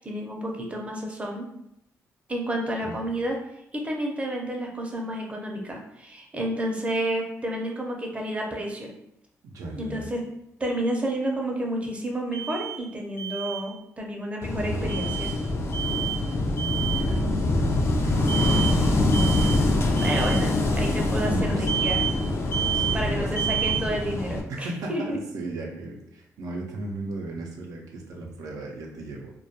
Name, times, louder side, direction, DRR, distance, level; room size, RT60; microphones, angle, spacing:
voice 1, 0.0-1.5 2.3-3.4 3.7-8.9 9.8-10.2 10.6-15.3 18.3-18.6 20.0-22.0 22.9-25.2, right 1 dB, 20° right, 0 dB, 0.5 m, -30 dB
voice 2, 9.4-10.1 16.8-17.3 18.0-19.4 21.2-21.7 22.7-23.6 24.5-29.3, right 2 dB, 85° right, 0 dB, 0.4 m, -36 dB
Alarm, 12.3-12.8 13.2-13.6 14.9-15.3 15.7-16.2 16.6-17.1 18.3-18.8 19.1-19.6 20.0-20.4 21.7-22.2 22.5-23.0 23.4-23.8, right 11 dB, 70° left, 0.9 m, -29 dB
Wind / Waves surf, 14.4-24.4, left 2 dB, 50° left, 0.4 m, -24 dB
2.2 x 2.1 x 2.7 m, 0.79 s
cardioid pair, 85°, 6 cm